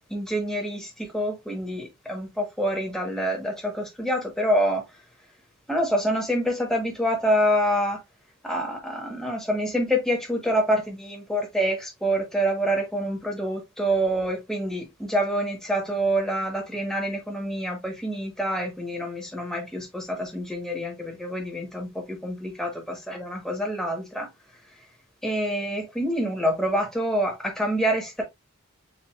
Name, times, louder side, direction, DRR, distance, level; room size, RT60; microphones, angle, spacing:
voice 1, 0.1-5.0 5.7-8.0 8.4-24.3 25.2-28.2, equal, ahead, 1.1 m, -26 dB
7.3 x 2.5 x 2.3 m
head